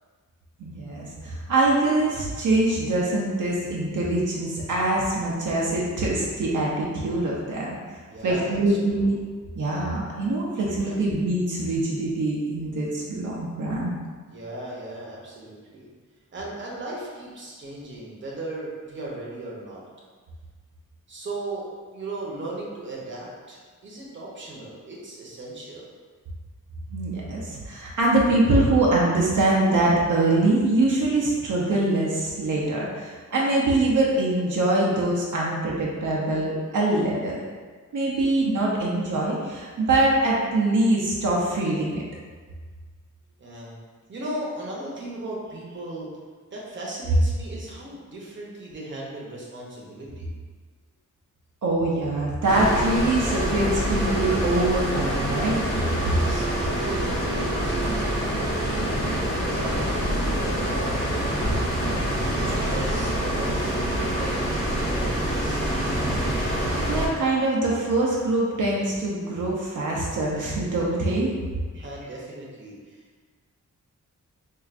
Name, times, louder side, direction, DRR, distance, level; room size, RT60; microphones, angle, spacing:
voice 1, 0.6-7.8 8.2-9.2 9.6-14.0 26.9-37.4 37.9-42.0 51.6-55.6 62.5-62.6 66.9-71.3, right 2 dB, 75° right, -4 dB, 0.6 m, -23 dB
voice 2, 8.1-9.2 10.8-10.9 14.3-15.9 16.3-19.8 21.1-25.9 43.4-43.7 44.1-46.1 46.5-50.3 56.0-61.0 62.4-65.7 71.7-73.2, right 2 dB, 40° right, -4 dB, 0.7 m, -37 dB
sound 1, 52.5-67.1, equal, 35° left, 1.0 m, -26 dB
4.5 x 2.4 x 2.4 m, 1.5 s
wide cardioid pair, 145°, 31 cm